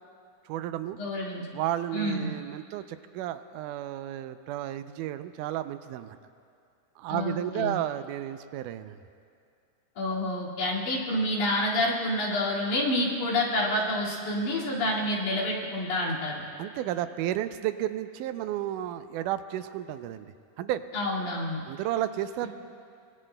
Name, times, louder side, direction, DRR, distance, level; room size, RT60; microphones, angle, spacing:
voice 1, 0.5-1.0 1.5-6.2 7.0-9.0 16.6-20.8 21.7-22.5, right 12 dB, 85° right, 10 dB, 2.1 m, -32 dB
voice 2, 1.0-1.5 1.9-2.3 7.1-7.8 10.0-16.4 20.9-21.7, left 1 dB, 75° left, -5 dB, 3.7 m, -28 dB
23.5 x 22.5 x 2.2 m, 2.4 s
omnidirectional pair, 3.6 m